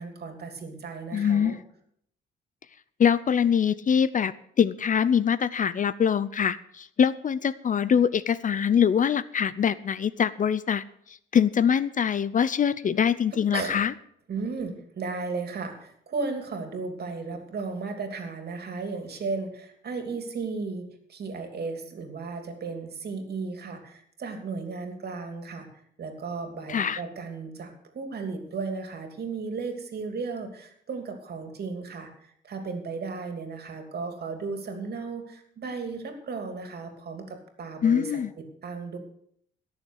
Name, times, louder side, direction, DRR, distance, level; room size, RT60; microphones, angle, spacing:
voice 1, 0.0-1.6 13.5-13.8 14.3-25.7 26.0-32.1 32.4-39.0, right 4 dB, 55° right, 5 dB, 2.9 m, -35 dB
voice 2, 1.1-1.6 3.0-10.8 11.3-13.9 26.7-27.0 37.8-38.3, left 7 dB, 40° left, 17 dB, 0.6 m, -23 dB
17.0 x 6.9 x 6.4 m, 0.69 s
cardioid pair, 90°, 20 cm